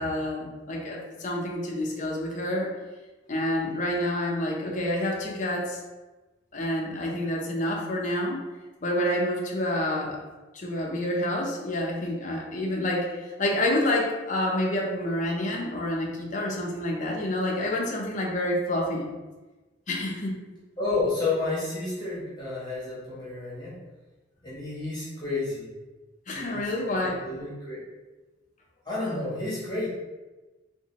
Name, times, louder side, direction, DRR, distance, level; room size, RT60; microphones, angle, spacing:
voice 1, 0.0-2.7 3.3-5.8 6.5-8.4 8.8-10.2 10.5-19.1 19.9-20.4 26.3-27.2, left 1 dB, 40° left, -2 dB, 0.7 m, -28 dB
voice 2, 20.8-23.7 24.4-25.7 26.3-26.7 27.0-27.8 28.8-29.9, left 3 dB, 20° left, -8 dB, 1.1 m, -30 dB
3.7 x 2.6 x 2.9 m, 1.2 s
head